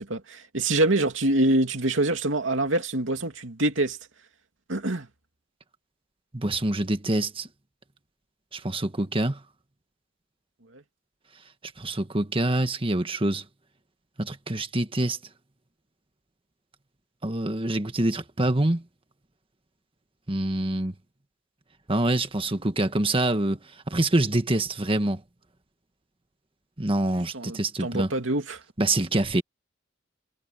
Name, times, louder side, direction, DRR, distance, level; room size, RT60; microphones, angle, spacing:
voice 1, 0.0-4.0 4.7-5.1 10.7-10.8 27.1-28.6, right 2 dB, 85° right, 2.6 m, -25 dB
voice 2, 6.3-7.5 8.5-9.4 11.8-13.4 14.2-15.2 17.2-18.8 20.3-20.9 21.9-25.2 26.8-28.1 28.8-29.4, right 1 dB, 30° right, 1.6 m, -25 dB
head